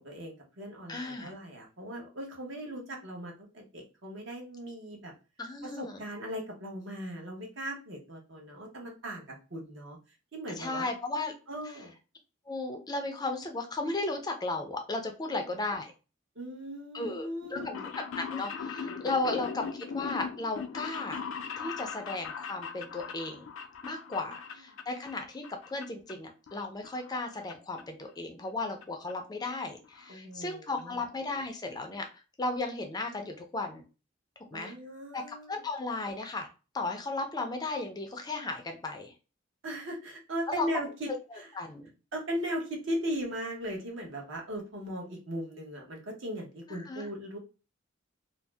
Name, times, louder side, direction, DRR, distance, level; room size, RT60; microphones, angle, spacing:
voice 1, 0.0-5.1 5.6-10.0 10.3-10.9 11.5-11.9 15.3-15.4 16.3-17.8 19.1-19.3 24.3-24.4 30.1-31.0 34.5-35.6 39.6-41.5 42.1-47.4, equal, 70° right, 0 dB, 1.0 m, -38 dB
voice 2, 0.9-1.3 5.4-6.0 10.6-11.3 12.5-15.9 16.9-17.6 18.2-21.2 21.6-23.5 23.8-32.1 32.4-33.8 34.5-34.7 35.1-35.2 35.5-36.5 36.7-39.1 40.5-40.7 41.6-41.9 46.7-47.1, left 2 dB, 20° left, 4 dB, 0.4 m, -35 dB
sound 1, 17.4-25.2 25.4-26.1 26.5-27.5 27.8-27.9 28.8-28.9 29.1-29.2 29.5-29.6 29.8-30.1 30.5-30.6 30.8-30.9, left 6 dB, 80° left, 0.4 m, -39 dB
2.6 x 2.0 x 3.3 m, 0.33 s
head